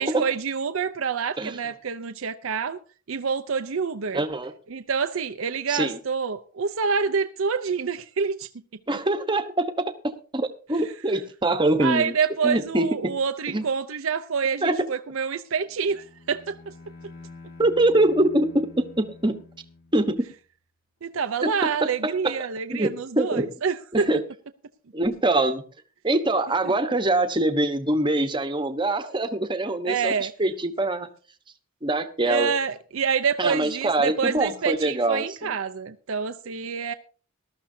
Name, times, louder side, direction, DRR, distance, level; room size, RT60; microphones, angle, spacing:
voice 1, 0.0-2.8 3.1-4.2 4.7-8.5 11.8-16.7 21.0-24.1 29.8-30.3 32.3-36.9, right 5 dB, 75° right, 0.6 m, -27 dB
voice 2, 4.1-4.5 5.7-6.0 8.9-12.1 12.4-13.1 13.5-13.6 14.6-14.9 17.6-19.4 19.9-20.3 21.4-23.5 23.9-24.2 24.9-25.6 26.0-31.1 31.8-32.5 33.4-35.6, right 2 dB, 20° right, 1.1 m, -24 dB
Bowed string instrument, 15.6-20.4, left 3 dB, 45° left, 2.0 m, -47 dB
19.0 x 13.0 x 2.7 m
head